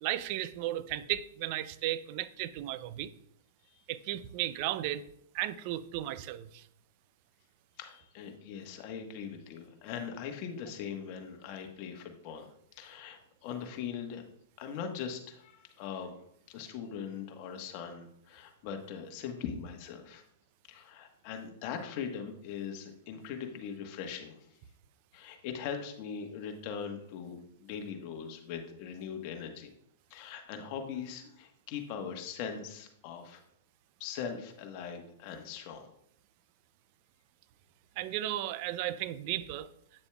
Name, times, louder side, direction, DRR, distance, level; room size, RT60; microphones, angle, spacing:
voice 1, 0.0-3.1 3.9-5.0 5.3-6.7 38.0-39.7, right 13 dB, 50° right, 15 dB, 0.5 m, -34 dB
voice 2, 7.8-14.2 14.6-16.2 16.5-20.2 20.7-24.5 25.1-29.7 30.1-33.4 34.0-35.9, left 7 dB, 45° left, 5 dB, 1.3 m, -41 dB
9.1 x 6.8 x 2.3 m, 0.73 s
hypercardioid pair, 125°, 0 cm